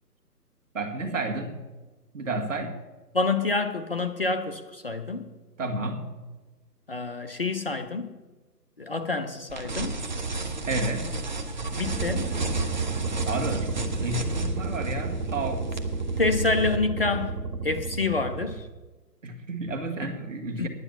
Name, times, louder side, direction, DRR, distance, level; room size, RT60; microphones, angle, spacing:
voice 1, 0.7-1.6 2.1-2.8 5.6-6.1 10.7-11.1 13.2-15.7 19.2-20.7, right 2 dB, 50° right, 2.0 m, -31 dB
voice 2, 3.1-5.3 6.9-8.2 8.8-10.0 11.7-12.4 16.2-17.4 17.6-18.7 20.6-20.7, left 3 dB, 35° left, 0.6 m, -27 dB
sound 1, 9.5-16.8, right 3 dB, 30° right, 0.7 m, -33 dB
sound 2, 11.8-18.6, right 3 dB, 80° right, 1.5 m, -32 dB
9.8 x 9.7 x 6.8 m
figure-of-eight pair, 140°, 49 cm